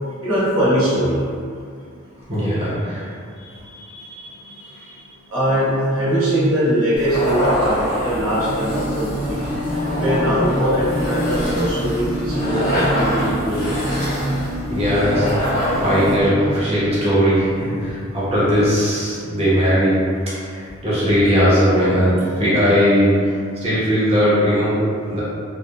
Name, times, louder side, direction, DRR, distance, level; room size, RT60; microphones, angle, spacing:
voice 1, 0.2-1.2 5.3-9.4 10.0-13.7 17.9-18.0, equal, 80° right, -9 dB, 0.9 m, -21 dB
voice 2, 2.3-3.1 3.4-5.0 14.7-25.2, equal, 30° right, -10 dB, 0.7 m, -19 dB
sound 1, 7.0-16.3, equal, 45° left, 0.9 m, -25 dB
sound 2, 8.3-16.6, equal, 15° left, 0.4 m, -26 dB
2.8 x 2.1 x 2.3 m, 2.2 s
head